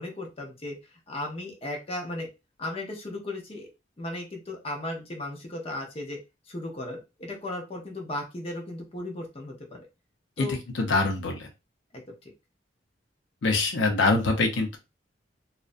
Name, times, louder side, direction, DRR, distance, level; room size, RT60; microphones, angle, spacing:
voice 1, 0.0-2.3 2.6-3.7 4.0-6.2 6.5-9.8 10.4-10.6 11.9-12.3, left 1 dB, 30° left, 0 dB, 0.6 m, -36 dB
voice 2, 10.8-11.5 13.4-14.8, left 3 dB, 80° left, 3 dB, 0.5 m, -24 dB
2.4 x 2.0 x 2.5 m, 0.26 s
head